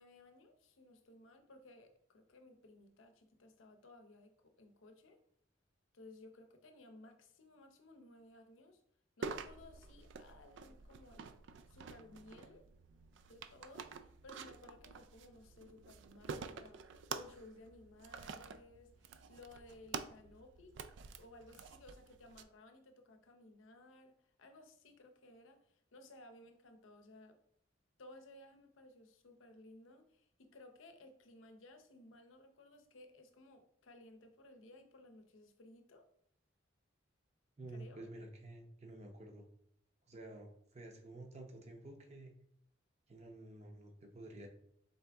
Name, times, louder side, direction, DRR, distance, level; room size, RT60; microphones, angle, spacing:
voice 1, 0.0-5.2 5.9-8.8 9.2-11.4 11.7-12.6 13.3-16.8 17.1-20.7 21.1-27.4 28.0-36.1 37.7-38.1, left 2 dB, 85° left, 6 dB, 0.7 m, -59 dB
sound 1, 9.2-22.4, right 5 dB, 65° right, 0.3 m, -49 dB
voice 2, 37.6-39.5 40.1-42.3 43.1-44.5, right 2 dB, 35° right, 3 dB, 0.7 m, -51 dB
4.1 x 3.4 x 3.4 m, 0.71 s
head